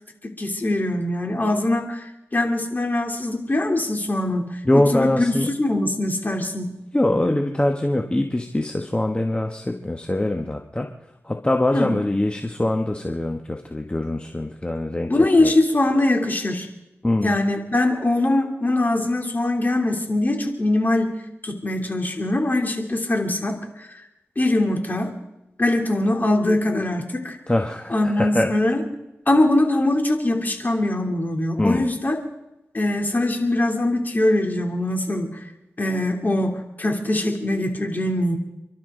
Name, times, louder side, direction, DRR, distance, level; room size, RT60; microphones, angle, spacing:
voice 1, 0.2-2.0 2.3-6.7 11.7-11.9 15.1-16.7 17.2-21.1 21.4-23.9 24.3-25.1 25.6-27.4 27.9-28.8 29.3-32.1 32.7-35.4 35.8-38.4, left 1 dB, 40° left, 2 dB, 3.3 m, -22 dB
voice 2, 4.6-5.5 6.9-10.9 11.2-15.1 15.4-15.5 17.0-17.3 27.5-28.5 31.6-31.9, left 1 dB, 20° left, 3 dB, 1.4 m, -23 dB
30.0 x 12.0 x 3.9 m, 0.92 s
cardioid pair, 50°, 5 cm